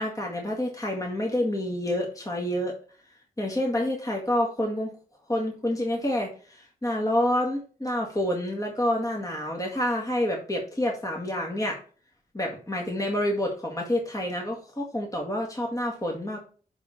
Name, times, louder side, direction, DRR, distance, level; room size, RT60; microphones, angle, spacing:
voice 1, 0.0-2.8 3.4-4.9 5.3-11.8 12.3-16.4, left 1 dB, 20° left, -1 dB, 2.1 m, -28 dB
10.5 x 3.7 x 4.3 m, 0.40 s
cardioid pair, 65°, 15 cm